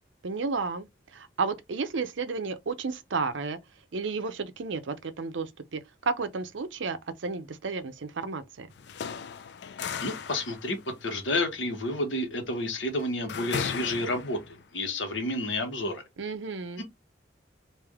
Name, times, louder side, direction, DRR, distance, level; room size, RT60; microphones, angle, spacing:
voice 1, 0.2-0.8 1.1-3.6 3.9-8.7 16.2-16.8, right 4 dB, 80° right, 0.6 m, -32 dB
sound 1, 8.7-14.6, left 6 dB, 60° left, 0.4 m, -37 dB
voice 2, 10.0-16.0 16.8-16.9, left 1 dB, 80° left, 1.2 m, -30 dB
3.4 x 2.6 x 3.5 m
head